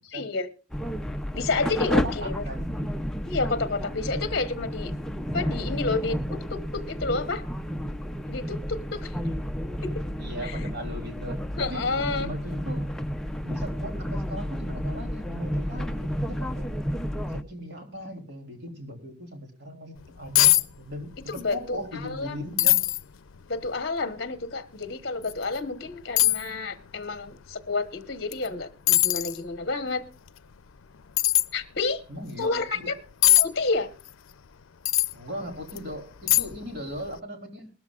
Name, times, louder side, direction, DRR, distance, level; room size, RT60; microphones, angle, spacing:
voice 1, 0.1-0.5 1.3-2.4 3.3-4.9 5.3-7.4 8.3-9.1 9.8-10.0 10.4-10.6 11.6-12.3 21.3-22.4 23.5-30.0 31.5-32.0 32.4-32.9 33.4-33.9, left 3 dB, 50° left, 10 dB, 1.2 m, -30 dB
sound 1, 0.7-17.4, equal, 5° left, 0.5 m, -31 dB
voice 2, 1.9-2.7 10.2-11.9 12.2-12.9 13.4-16.7 17.3-22.8 32.1-32.9 35.1-37.7, equal, 55° right, 3 dB, 3.4 m, -38 dB
sound 2, 20.0-20.1 20.3-20.6 20.9-21.5 21.8-21.9 22.6-23.0 23.6-23.7 25.2-25.4 26.2-26.4 28.3-28.5 28.9-29.4 31.2-31.5 33.2-33.5 34.8-35.1 35.7-35.8 36.3-36.7 37.0-37.1, left 16 dB, 90° left, 0.5 m, -20 dB
20.5 x 13.5 x 2.4 m, 0.34 s
head